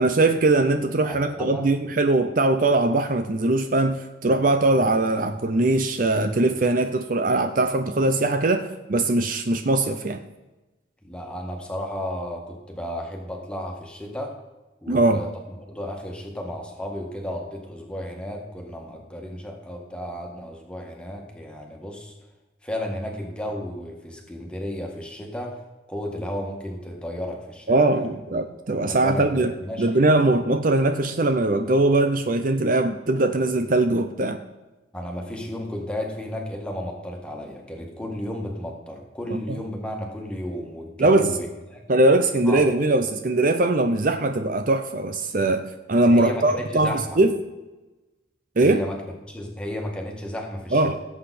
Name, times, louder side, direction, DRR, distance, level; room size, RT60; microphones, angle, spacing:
voice 1, 0.0-10.2 14.9-15.2 27.7-29.5 29.8-34.4 39.3-39.4 41.0-41.3 41.9-47.3 48.6-48.8 50.7-51.0, right 2 dB, 45° right, 8 dB, 0.6 m, -21 dB
voice 2, 1.0-1.6 11.0-14.4 14.8-15.3 15.7-22.2 22.6-25.6 25.9-28.5 28.8-30.0 34.9-41.8 42.5-42.7 46.1-47.2 48.6-49.0 49.3-51.0, equal, 5° left, 0 dB, 1.9 m, -33 dB
17.0 x 7.9 x 4.3 m, 1.1 s
head